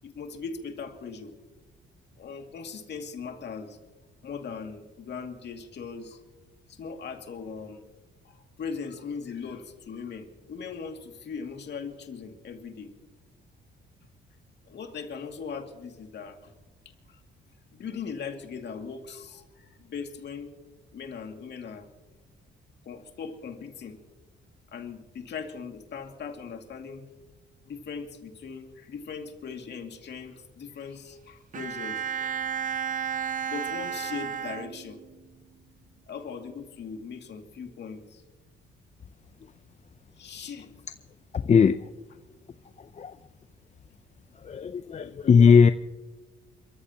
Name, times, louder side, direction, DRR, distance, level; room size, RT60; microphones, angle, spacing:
voice 1, 0.0-1.3 2.2-3.8 4.2-6.2 6.7-7.8 8.2-12.9 14.7-16.5 17.1-17.2 17.7-20.6 20.9-21.9 22.8-24.0 24.7-27.1 27.7-32.4 33.5-35.0 36.1-38.2 40.2-40.7, left 5 dB, 60° left, 2.4 m, -39 dB
Bowed string instrument, 31.5-35.2, right 8 dB, 40° right, 0.6 m, -32 dB
voice 2, 41.3-41.9 42.8-43.2 44.4-45.7, left 6 dB, 35° left, 0.5 m, -19 dB
29.5 x 14.0 x 2.9 m
cardioid pair, 90°, 20 cm